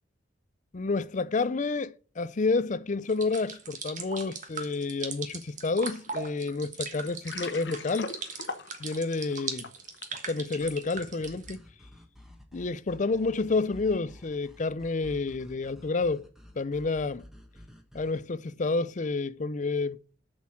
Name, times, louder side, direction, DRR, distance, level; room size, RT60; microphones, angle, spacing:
voice 1, 0.7-8.1 8.8-9.7 10.2-11.6 12.5-16.2 16.6-17.2 17.9-20.0, left 3 dB, 45° left, 0.5 m, -29 dB
sound 1, 3.1-11.5, right 5 dB, 45° right, 1.4 m, -39 dB
Water, 7.1-10.2, left 4 dB, 75° left, 1.2 m, -40 dB
sound 2, 10.6-18.2, left 1 dB, ahead, 1.4 m, -51 dB
7.2 x 6.4 x 7.5 m
head